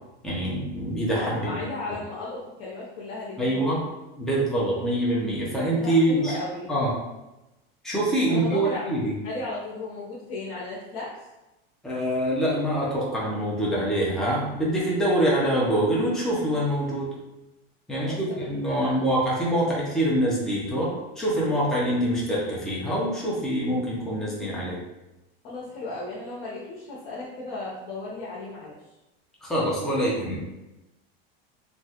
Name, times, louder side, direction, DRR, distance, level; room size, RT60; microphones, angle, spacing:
voice 1, 0.2-1.6 3.4-3.8 4.2-6.3 6.7-6.9 7.8-9.1 11.8-17.1 17.9-24.8 29.4-30.4, right 1 dB, ahead, -6 dB, 0.5 m, -25 dB
voice 2, 1.1-3.9 5.7-6.7 8.3-8.8 9.2-11.2 18.0-19.0 25.4-28.8, left 2 dB, 80° left, -6 dB, 0.8 m, -35 dB
3.0 x 2.3 x 2.8 m, 0.99 s
supercardioid pair, 140°, 30 cm